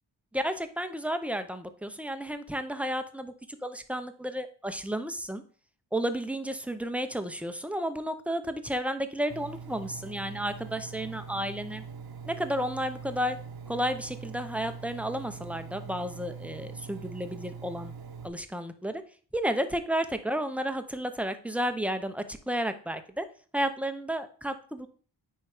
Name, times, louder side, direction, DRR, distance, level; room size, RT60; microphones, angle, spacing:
voice 1, 0.3-3.3 3.6-5.4 5.9-11.8 12.2-13.4 13.7-17.9 18.2-19.0 19.3-23.2 23.5-24.9, equal, 5° right, 9 dB, 0.7 m, -32 dB
Engine, 9.3-18.3, right 6 dB, 60° right, 1.0 m, -43 dB
9.4 x 3.3 x 4.9 m, 0.43 s
wide cardioid pair, 80°, 42 cm